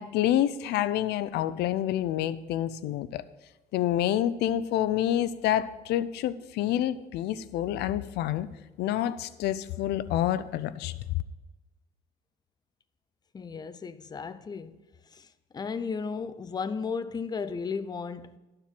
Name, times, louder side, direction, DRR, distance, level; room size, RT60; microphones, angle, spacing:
voice 1, 0.0-3.2 3.7-8.5 8.8-10.9, left 12 dB, 80° left, 0.5 m, -28 dB
voice 2, 13.3-14.8 15.1-15.3 15.5-18.4, left 5 dB, 25° left, 0.5 m, -34 dB
12.0 x 4.5 x 7.3 m
cardioid pair, 110°, 17 cm